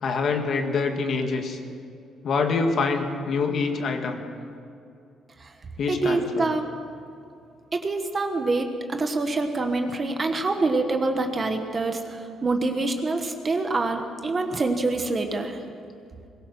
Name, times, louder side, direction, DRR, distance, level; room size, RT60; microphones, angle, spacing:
voice 1, 0.0-1.6 2.2-4.2 5.8-6.5, left 4 dB, 45° left, 4 dB, 1.9 m, -25 dB
voice 2, 5.9-6.6 7.7-15.6, right 3 dB, 25° right, 6 dB, 1.4 m, -26 dB
22.0 x 20.5 x 6.2 m, 2.5 s
cardioid pair, 170°, 0 cm